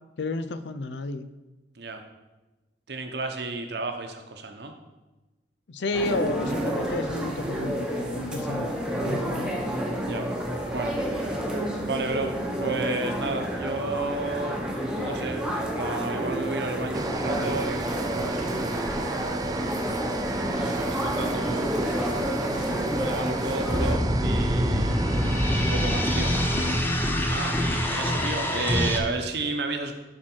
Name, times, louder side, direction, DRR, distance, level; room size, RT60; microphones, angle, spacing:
voice 1, 0.2-1.3 5.7-8.7 9.0-9.6, left 2 dB, 75° left, 11 dB, 0.5 m, -31 dB
voice 2, 2.9-4.7 10.1-10.3 10.7-11.0 11.9-12.3 12.6-14.6 15.0-20.1 20.3-21.7 22.9-25.0 25.5-26.3 27.3-29.9, right 3 dB, 65° right, 5 dB, 1.0 m, -32 dB
sound 1, 5.9-23.9, right 1 dB, 5° right, 1.0 m, -30 dB
sound 2, 16.9-26.8, right 2 dB, 20° right, 0.4 m, -32 dB
sound 3, 23.7-29.0, equal, 10° left, 0.7 m, -25 dB
11.5 x 4.5 x 4.6 m, 1.1 s
head